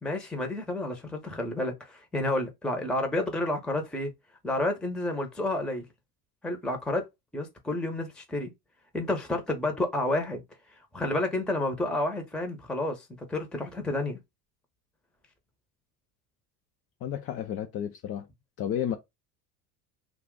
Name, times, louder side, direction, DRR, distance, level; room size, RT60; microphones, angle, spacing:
voice 1, 0.0-4.1 4.4-5.8 6.4-7.0 7.3-8.5 8.9-10.4 10.9-14.2, left 1 dB, ahead, 0.7 m, -30 dB
voice 2, 17.0-18.3 18.6-19.0, left 9 dB, 30° left, 0.4 m, -32 dB
2.4 x 2.4 x 3.8 m
hypercardioid pair, 80°, 49 cm